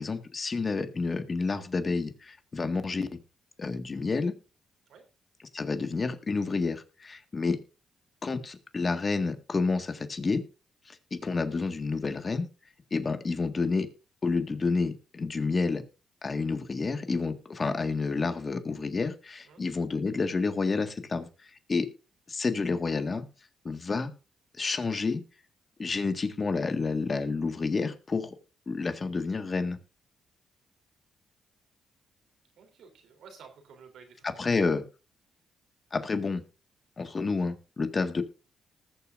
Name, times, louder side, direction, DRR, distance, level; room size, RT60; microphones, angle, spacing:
voice 1, 0.0-3.2 3.6-4.3 5.5-7.6 8.2-10.4 10.9-12.5 12.9-13.9 14.2-15.8 16.2-21.3 21.7-21.9 22.3-23.3 23.7-24.1 24.6-25.2 25.8-28.4 28.7-29.8 34.2-34.8 35.9-36.4 37.0-38.2, left 4 dB, 40° left, 9 dB, 1.7 m, -29 dB
voice 2, 32.6-34.5, right 6 dB, 80° right, 5 dB, 3.3 m, -52 dB
19.5 x 7.1 x 2.6 m, 0.31 s
supercardioid pair, 65°, 0 cm